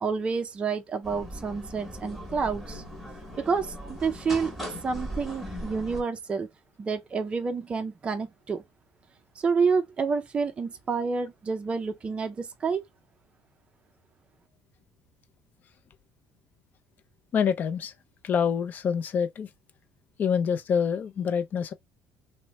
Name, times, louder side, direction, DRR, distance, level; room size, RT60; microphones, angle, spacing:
voice 1, 0.0-2.8 3.4-4.5 4.8-6.5 6.8-8.6 9.4-12.8, right 5 dB, 25° right, 0.4 m, -29 dB
sound 1, 1.0-6.0, equal, ahead, 1.0 m, -39 dB
voice 2, 17.3-17.9 18.2-19.5 20.2-21.7, left 7 dB, 40° left, 0.5 m, -26 dB
3.0 x 2.0 x 2.9 m
cardioid pair, 115°, 4 cm